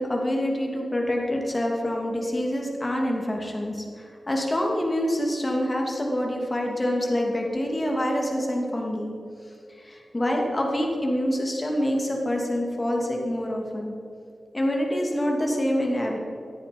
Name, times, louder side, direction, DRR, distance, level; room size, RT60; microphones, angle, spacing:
voice 1, 0.0-9.1 9.7-13.9 14.5-16.2, equal, 20° left, 0 dB, 2.6 m, -26 dB
16.5 x 13.0 x 5.3 m, 2.5 s
wide cardioid pair, 150°, 0 cm